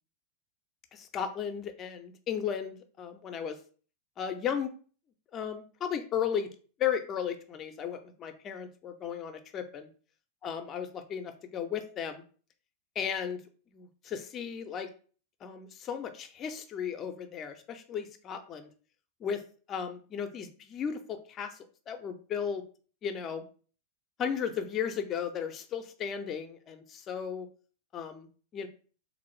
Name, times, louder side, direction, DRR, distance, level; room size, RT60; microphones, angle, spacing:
voice 1, 0.9-3.6 4.2-4.7 5.3-6.5 6.8-9.9 10.4-12.2 13.0-13.4 13.7-14.9 15.4-18.7 19.2-19.4 19.7-22.6 23.0-23.4 24.2-27.5 27.9-28.7, left 8 dB, 30° left, 8 dB, 0.5 m, -35 dB
3.6 x 2.5 x 3.1 m, 0.41 s
figure-of-eight pair, 90°, 0 cm